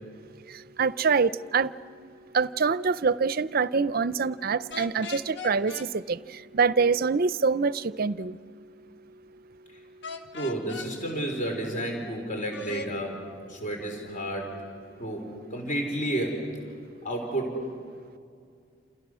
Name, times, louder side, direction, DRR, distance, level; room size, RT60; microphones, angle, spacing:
voice 1, 0.8-1.7 2.3-6.2 6.5-8.4, right 5 dB, 50° right, 0.5 m, -25 dB
sound 1, 4.7-5.9 10.0-10.9 12.5-12.9, left 4 dB, 65° left, 1.8 m, -38 dB
voice 2, 10.3-13.2 13.5-14.5 15.0-16.5 17.0-17.7, right 1 dB, 40° left, 3.7 m, -31 dB
29.0 x 28.5 x 6.2 m
head